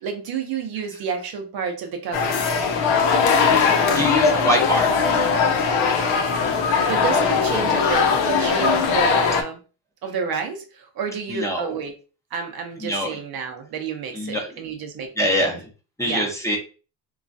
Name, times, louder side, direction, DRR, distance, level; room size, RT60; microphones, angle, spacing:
voice 1, 0.0-2.4 6.8-9.6 10.0-11.9 12.3-15.5 16.0-16.3, right 6 dB, 50° right, 4 dB, 0.6 m, -30 dB
sound 1, 2.1-9.4, left 5 dB, 75° left, 0.8 m, -20 dB
voice 2, 3.9-4.9 11.3-11.8 12.8-13.2 14.1-14.5 15.2-15.6 16.0-16.6, equal, 5° left, -2 dB, 0.7 m, -24 dB
3.0 x 2.3 x 2.5 m, 0.35 s
cardioid pair, 110°, 47 cm